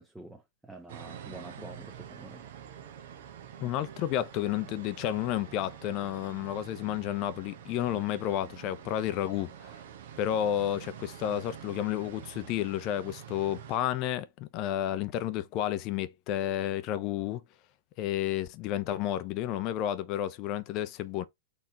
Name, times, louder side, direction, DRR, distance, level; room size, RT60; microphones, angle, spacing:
voice 1, 0.0-2.5, right 2 dB, 5° right, 0.8 m, -47 dB
sound 1, 0.9-13.8, right 9 dB, 55° right, 1.0 m, -47 dB
voice 2, 3.6-9.7 10.2-17.4 18.0-21.2, left 11 dB, 40° left, 0.6 m, -31 dB
4.4 x 3.1 x 3.9 m
figure-of-eight pair, 105°, 0 cm